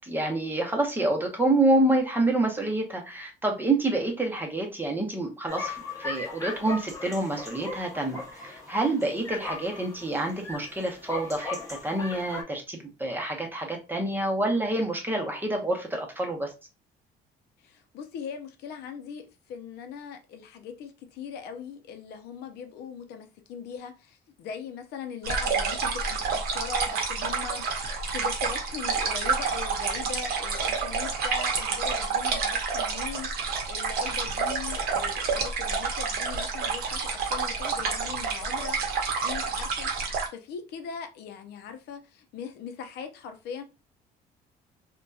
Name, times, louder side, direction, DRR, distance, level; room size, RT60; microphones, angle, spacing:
voice 1, 0.0-16.5, right 2 dB, 10° right, 0.7 m, -27 dB
sound 1, 5.5-12.4, left 3 dB, 20° left, 0.8 m, -38 dB
voice 2, 17.6-43.6, left 6 dB, 75° left, 0.5 m, -40 dB
sound 2, 25.2-40.3, right 5 dB, 65° right, 0.7 m, -29 dB
2.7 x 2.2 x 2.3 m
cardioid pair, 110°, 17 cm